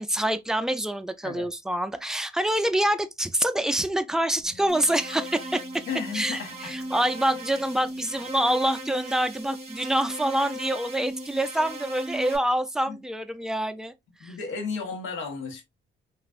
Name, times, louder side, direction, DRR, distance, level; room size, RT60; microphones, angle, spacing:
voice 1, 0.0-5.8 6.1-13.9 14.2-14.3, right 1 dB, 5° right, 0.3 m, -26 dB
Wind instrument woodwind instrument, 4.4-8.9, left 9 dB, 35° left, 1.5 m, -53 dB
sound 1, 4.7-12.4, right 1 dB, 30° right, 1.3 m, -38 dB
voice 2, 5.9-6.7 12.9-13.0 14.2-15.6, left 5 dB, 85° left, 1.1 m, -33 dB
3.3 x 2.4 x 2.4 m
cardioid pair, 90°, 20 cm